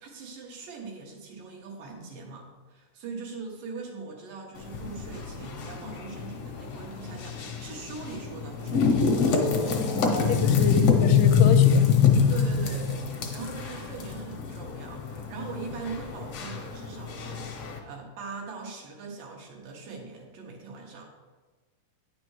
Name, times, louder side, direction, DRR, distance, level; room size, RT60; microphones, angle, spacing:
voice 1, 0.0-9.9 10.3-10.5 12.2-21.1, right 4 dB, 85° right, 0 dB, 2.9 m, -41 dB
sound 1, 4.6-17.8, left 6 dB, 65° left, 1.6 m, -25 dB
voice 2, 10.0-11.9, left 5 dB, 85° left, 8 dB, 2.1 m, -30 dB
9.8 x 6.0 x 3.1 m, 1.3 s
omnidirectional pair, 3.8 m